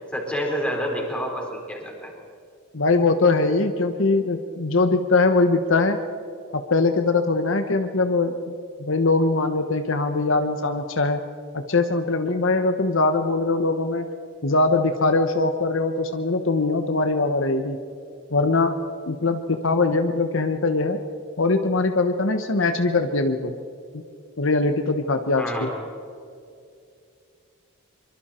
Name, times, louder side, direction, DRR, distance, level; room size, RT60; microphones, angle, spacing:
voice 1, 0.1-2.1 25.4-25.7, equal, 5° left, -1 dB, 4.4 m, -28 dB
voice 2, 2.7-6.0 6.5-8.3 8.8-11.2 11.5-14.1 14.4-17.8 18.3-18.8 19.1-21.0 21.4-23.5 23.9-24.0 24.4-25.7, left 3 dB, 65° left, 7 dB, 1.1 m, -21 dB
24.5 x 24.5 x 4.4 m, 2.5 s
head